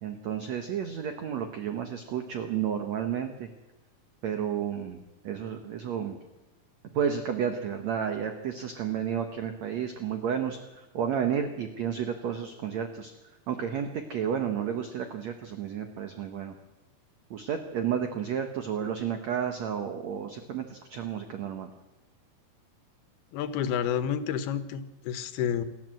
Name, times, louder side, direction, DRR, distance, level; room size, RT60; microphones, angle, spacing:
voice 1, 0.0-3.5 4.2-5.0 5.2-6.2 6.9-13.1 13.5-16.6 17.3-21.7, right 8 dB, 60° right, 6 dB, 2.0 m, -31 dB
voice 2, 23.3-25.6, left 8 dB, 90° left, 11 dB, 3.1 m, -30 dB
27.5 x 12.5 x 7.7 m, 1.1 s
omnidirectional pair, 4.3 m